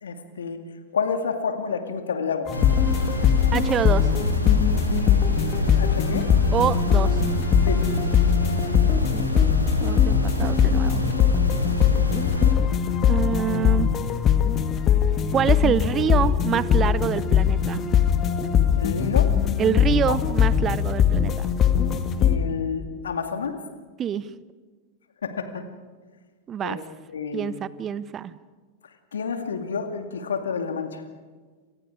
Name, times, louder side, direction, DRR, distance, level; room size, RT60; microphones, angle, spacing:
voice 1, 0.0-0.6 0.9-2.5 5.8-6.3 7.6-7.8 18.8-19.3 20.1-20.2 22.2-23.6 25.2-25.6 26.6-26.8 27.1-27.6 29.1-31.0, left 6 dB, 70° left, 7 dB, 2.4 m, -29 dB
sound 1, 2.5-12.5, equal, 90° left, 2.9 m, -27 dB
sound 2, 2.5-22.4, left 8 dB, 30° left, 1.9 m, -21 dB
voice 2, 3.5-4.1 6.5-7.2 9.1-9.5 9.8-11.0 13.1-13.9 15.3-17.8 19.6-21.5 24.0-24.3 26.5-26.8 27.3-28.3, right 9 dB, 25° right, 18 dB, 0.7 m, -26 dB
29.0 x 26.5 x 4.9 m, 1.5 s
figure-of-eight pair, 90°, 0 cm